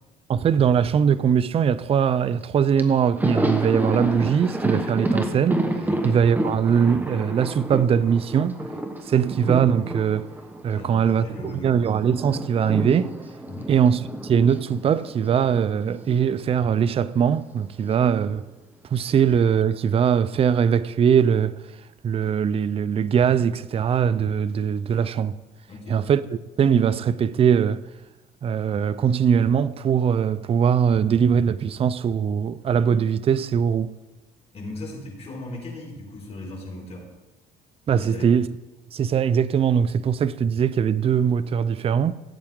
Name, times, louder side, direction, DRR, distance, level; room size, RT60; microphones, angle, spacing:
voice 1, 0.3-5.7 6.0-8.6 9.1-10.3 10.6-13.1 13.7-18.4 18.9-21.6 22.0-25.4 25.9-26.2 26.6-27.8 28.4-33.9 37.9-38.5 38.9-42.1, right 7 dB, 35° right, 0.5 m, -21 dB
Thunder, 2.4-2.5 2.8-11.6 11.9-16.2 16.4-16.6 17.8-18.5, right 1 dB, 10° right, 1.1 m, -29 dB
voice 2, 10.7-11.8 13.5-13.7 25.7-26.0 34.5-37.1 37.9-38.3, left 2 dB, 40° left, 4.8 m, -37 dB
16.5 x 8.8 x 3.7 m
cardioid pair, 110°, 17 cm